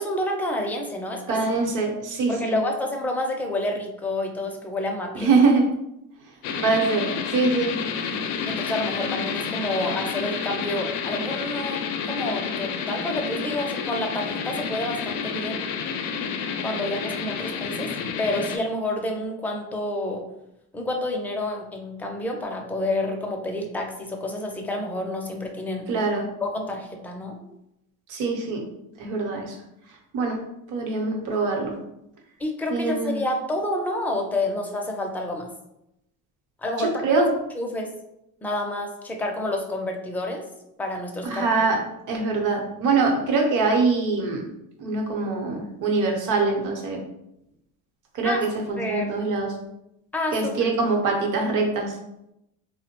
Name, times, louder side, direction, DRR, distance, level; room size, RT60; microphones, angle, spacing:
voice 1, 0.0-1.4 2.3-5.3 8.5-11.8 12.1-15.7 16.6-17.9 18.2-20.2 20.7-25.9 26.4-27.4 32.4-35.5 36.6-37.2 37.6-37.9 38.4-40.4 40.8-41.5 48.2-48.4 48.8-49.1 50.1-50.5, left 1 dB, 5° left, 1 dB, 0.4 m, -29 dB
voice 2, 1.3-2.6 5.1-5.7 6.6-7.8 25.9-26.3 28.1-28.6 29.0-29.6 30.1-30.4 30.7-31.8 32.7-33.2 36.8-37.3 41.2-41.8 42.1-44.4 44.8-47.0 48.1-49.5 50.3-52.0, right 3 dB, 65° right, 2 dB, 0.8 m, -23 dB
sound 1, 6.4-18.6, left 6 dB, 85° left, 0.5 m, -30 dB
3.5 x 2.1 x 2.8 m, 0.84 s
cardioid pair, 115°, 34 cm